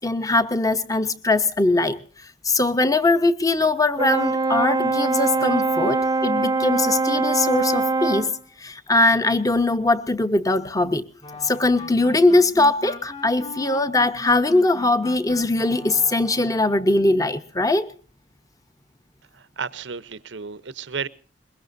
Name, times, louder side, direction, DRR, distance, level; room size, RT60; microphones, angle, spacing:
voice 1, 0.0-2.0 2.4-8.3 8.6-11.1 11.4-17.9, left 2 dB, 20° left, 0.9 m, -21 dB
Brass instrument, 4.0-8.4, right 3 dB, 20° right, 0.7 m, -22 dB
sound 1, 11.2-16.7, left 2 dB, 35° left, 3.1 m, -40 dB
voice 2, 19.3-21.1, right 6 dB, 90° right, 0.9 m, -32 dB
22.5 x 21.5 x 2.7 m
head